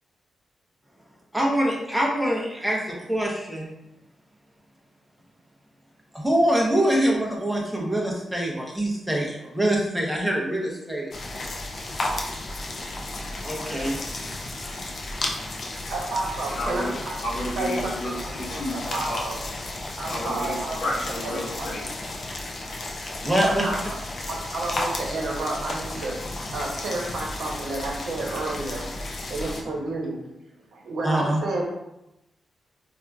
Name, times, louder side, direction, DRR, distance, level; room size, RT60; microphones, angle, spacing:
voice 1, 1.3-3.7 6.1-11.1 13.4-14.0 23.2-23.7 31.0-31.4, right 1 dB, 5° right, -2 dB, 0.6 m, -24 dB
sound 1, 11.1-29.6, left 2 dB, 45° left, 0.4 m, -33 dB
voice 2, 15.9-17.2 17.5-17.9 18.4-18.6 18.9-19.4 20.0-20.8 21.2-21.7 23.4-24.0 24.2-26.2 26.5-28.9 29.3-30.2 30.7-31.6, right 2 dB, 75° right, -1 dB, 0.8 m, -30 dB
voice 3, 16.5-16.9 17.2-19.3 20.1-21.9, left 1 dB, 60° left, -4 dB, 0.9 m, -31 dB
4.2 x 2.4 x 2.3 m, 0.90 s
wide cardioid pair, 145°, 0 cm